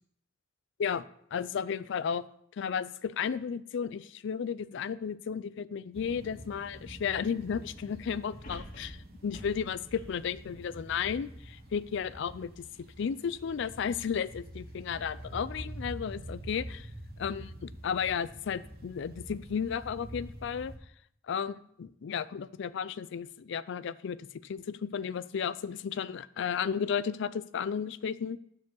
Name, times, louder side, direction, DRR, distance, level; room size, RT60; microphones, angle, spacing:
voice 1, 1.3-2.2 2.6-16.9 17.2-20.7 21.3-28.4, left 7 dB, 65° left, 17 dB, 0.4 m, -34 dB
sound 1, 5.9-20.8, right 1 dB, 55° right, 1.2 m, -46 dB
sound 2, 8.4-11.8 12.3-12.4, left 1 dB, 45° left, 1.8 m, -48 dB
7.0 x 4.9 x 6.2 m, 0.68 s
head